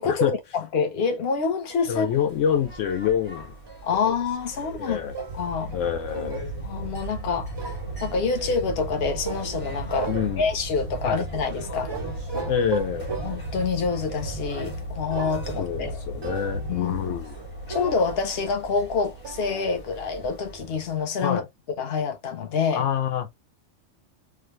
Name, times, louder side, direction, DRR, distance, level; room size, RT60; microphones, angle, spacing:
voice 1, 0.0-2.1 3.8-5.0 5.3-5.7 6.6-7.5 8.0-11.9 13.2-16.0 16.7-17.2 17.7-21.4 21.8-22.8, left 5 dB, 55° left, 1.0 m, -27 dB
sound 1, 1.7-3.9 5.1-6.5 7.5-8.0 9.2-9.7 10.0-10.7 11.9-13.6 15.1-15.9 16.2-16.9 17.7-20.3, right 5 dB, 40° right, 0.3 m, -38 dB
voice 2, 1.9-3.5 4.6-5.1 5.7-6.5 10.1-10.5 11.0-11.2 12.5-13.1 15.6-17.4 21.2-21.5 22.7-23.3, left 8 dB, 80° left, 0.9 m, -26 dB
sound 2, 1.9-21.1, right 1 dB, 35° left, 1.7 m, -36 dB
3.4 x 2.1 x 3.0 m
omnidirectional pair, 1.3 m